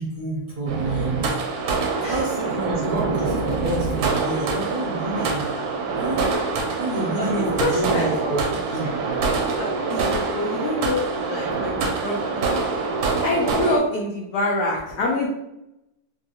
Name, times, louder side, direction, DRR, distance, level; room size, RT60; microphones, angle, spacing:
voice 1, 0.0-1.3 2.0-5.5 5.9-6.2 6.8-8.4 8.7-8.9, right 2 dB, 60° right, -4 dB, 1.1 m, -28 dB
sound 1, 0.7-13.8, right 4 dB, 75° right, 1.3 m, -25 dB
voice 2, 6.9-8.5 9.5-12.9 13.2-15.3, left 2 dB, 85° left, -2 dB, 0.8 m, -27 dB
3.5 x 2.3 x 2.7 m, 0.88 s
omnidirectional pair, 2.3 m